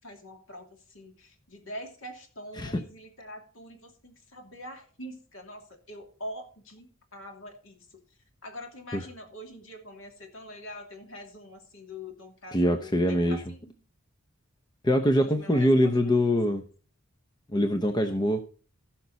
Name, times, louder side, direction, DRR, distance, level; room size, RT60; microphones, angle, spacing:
voice 1, 0.0-8.0 8.4-13.7 15.0-16.4, equal, 65° left, 4 dB, 2.7 m, -44 dB
voice 2, 12.5-13.4 14.8-16.6 17.5-18.5, equal, 20° left, 8 dB, 0.7 m, -23 dB
16.0 x 5.9 x 4.0 m, 0.39 s
head